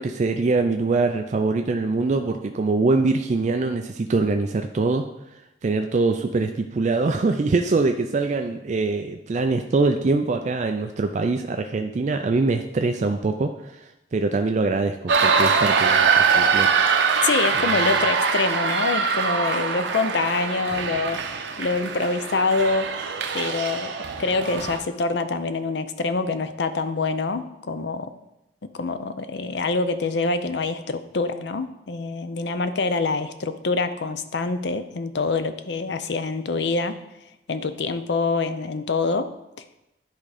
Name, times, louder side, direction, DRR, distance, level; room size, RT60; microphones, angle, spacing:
voice 1, 0.0-5.0 5.6-16.7 17.6-17.9, right 3 dB, 40° right, 5 dB, 0.4 m, -23 dB
sound 1, 15.1-24.8, right 5 dB, 85° right, 0.7 m, -23 dB
voice 2, 17.2-22.9 23.3-23.9 24.2-28.1 28.7-37.0 37.5-39.3, left 3 dB, 70° left, 10 dB, 0.6 m, -25 dB
10.5 x 3.7 x 4.9 m, 0.91 s
head